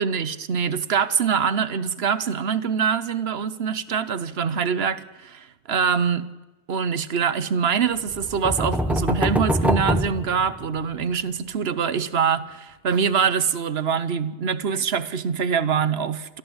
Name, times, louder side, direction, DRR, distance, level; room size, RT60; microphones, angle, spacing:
voice 1, 0.0-6.3 6.7-16.4, right 6 dB, 65° right, 15 dB, 1.1 m, -24 dB
sound 1, 8.1-11.0, equal, ahead, 1.0 m, -24 dB
29.5 x 13.5 x 7.9 m, 1.1 s
omnidirectional pair, 1.2 m